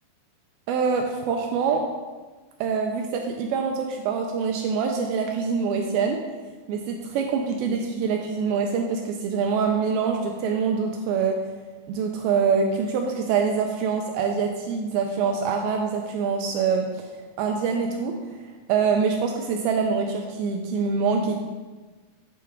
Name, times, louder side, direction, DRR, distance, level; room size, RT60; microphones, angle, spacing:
voice 1, 0.7-1.8 2.6-6.2 6.7-11.4 11.9-17.0 17.4-18.1 18.7-21.4, right 5 dB, 80° right, 2 dB, 2.2 m, -25 dB
8.2 x 4.5 x 3.5 m, 1.3 s
omnidirectional pair, 4.7 m